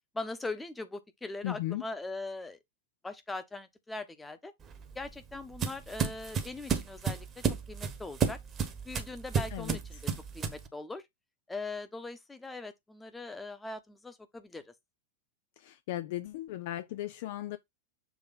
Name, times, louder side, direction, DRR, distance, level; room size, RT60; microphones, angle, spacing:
voice 1, 0.1-2.6 3.0-4.5 4.9-8.4 8.8-10.0 10.3-11.0 11.5-14.7, left 2 dB, 10° left, 1.1 m, -41 dB
voice 2, 1.4-1.8 9.5-9.8 15.6-17.6, left 14 dB, 50° left, 0.5 m, -36 dB
sound 1, 4.6-10.7, right 6 dB, 25° right, 1.2 m, -32 dB
7.1 x 3.5 x 4.0 m
figure-of-eight pair, 90°, 0 cm